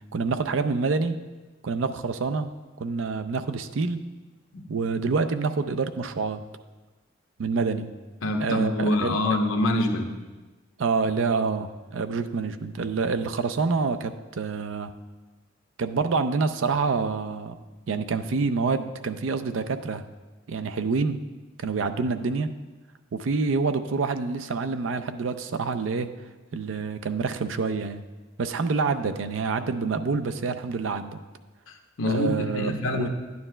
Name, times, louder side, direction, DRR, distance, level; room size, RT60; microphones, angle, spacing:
voice 1, 0.1-1.2 1.6-2.5 2.8-4.1 4.7-6.4 7.4-7.9 8.4-9.2 10.8-14.9 15.8-17.5 17.9-20.0 20.5-21.2 21.6-22.5 23.1-26.1 26.5-28.0 28.4-31.2 32.0-33.1, right 4 dB, 75° right, 9 dB, 0.5 m, -27 dB
voice 2, 8.2-10.1 31.7-33.1, left 1 dB, 90° left, 4 dB, 0.8 m, -26 dB
11.0 x 9.4 x 2.2 m, 1.2 s
head